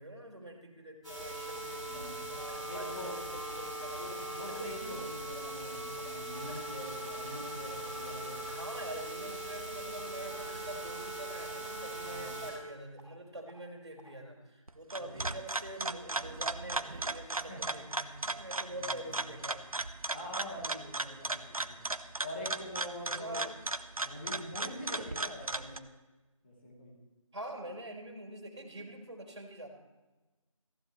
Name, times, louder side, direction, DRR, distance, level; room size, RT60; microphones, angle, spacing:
voice 1, 0.0-4.1 8.5-19.6 23.1-23.6 27.3-29.7, right 1 dB, 50° right, 2 dB, 3.7 m, -45 dB
sound 1, 1.0-12.5 13.0-13.1 13.5-13.6 14.0-14.1, right 1 dB, ahead, 3.0 m, -40 dB
voice 2, 1.8-2.2 2.7-3.2 3.9-8.4 12.0-12.4 15.0-15.3 17.5-17.7 18.7-19.2 20.1-23.4 23.9-25.8 26.4-27.0, left 1 dB, 20° left, -4 dB, 2.8 m, -44 dB
sound 2, 14.7-25.8, right 2 dB, 90° right, 0.9 m, -36 dB
17.5 x 15.5 x 3.1 m, 1.2 s
figure-of-eight pair, 175°, 18 cm